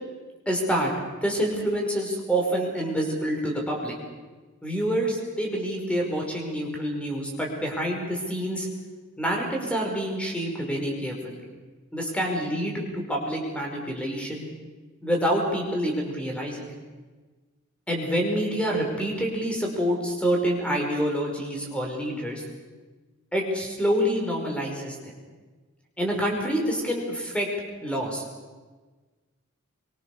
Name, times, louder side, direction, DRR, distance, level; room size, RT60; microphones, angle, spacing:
voice 1, 0.5-0.9 1.2-3.9 4.6-8.7 9.2-11.4 11.9-14.5 15.0-16.7 17.9-22.4 23.3-25.1 26.0-27.5 27.8-28.2, equal, 5° left, 0 dB, 5.2 m, -27 dB
25.0 x 23.5 x 6.8 m, 1.3 s
head